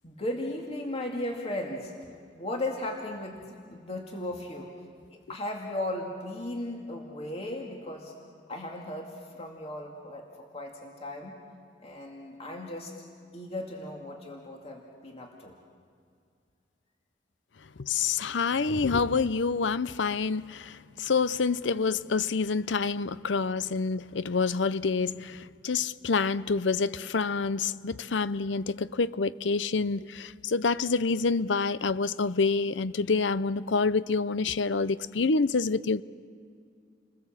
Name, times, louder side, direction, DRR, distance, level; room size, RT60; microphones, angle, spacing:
voice 1, 0.0-4.7 5.1-8.1 8.5-11.4 11.8-12.9 13.3-15.5, left 1 dB, 35° left, 2.3 m, -36 dB
voice 2, 17.8-36.0, left 4 dB, 80° left, 0.7 m, -27 dB
29.5 x 21.0 x 7.4 m
head